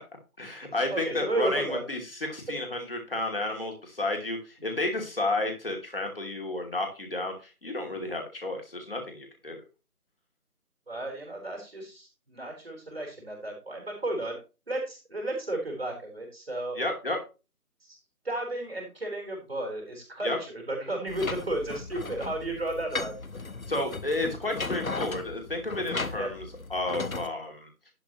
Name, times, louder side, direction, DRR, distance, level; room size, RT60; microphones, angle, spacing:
voice 1, 0.4-9.6 16.8-17.2 20.2-20.4 23.7-26.4 26.7-27.7, left 2 dB, 40° left, 2 dB, 2.9 m, -31 dB
voice 2, 0.9-1.8 4.6-4.8 7.8-8.0 10.9-14.4 14.7-16.8 17.8-18.0 18.2-23.2 26.1-26.3, right 1 dB, 40° right, 1 dB, 4.2 m, -33 dB
sound 1, 21.1-27.3, left 3 dB, 65° left, 1.2 m, -36 dB
11.5 x 8.3 x 3.1 m, 0.31 s
figure-of-eight pair, 175°, 45 cm